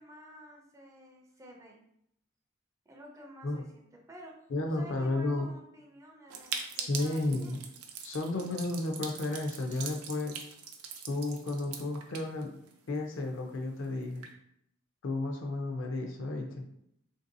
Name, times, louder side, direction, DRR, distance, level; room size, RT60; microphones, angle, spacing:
voice 1, 0.0-1.8 2.9-4.4 4.6-7.6, right 1 dB, 15° right, 0 dB, 0.4 m, -52 dB
voice 2, 4.5-5.5 6.8-7.6 8.0-10.4 11.1-12.5 12.9-14.2 15.0-16.6, left 2 dB, 60° left, 3 dB, 0.5 m, -32 dB
sound 1, 6.3-13.0 13.3-13.4 13.5-13.6 14.0-14.3, right 6 dB, 85° right, 0.4 m, -42 dB
3.2 x 2.6 x 2.6 m, 0.74 s
head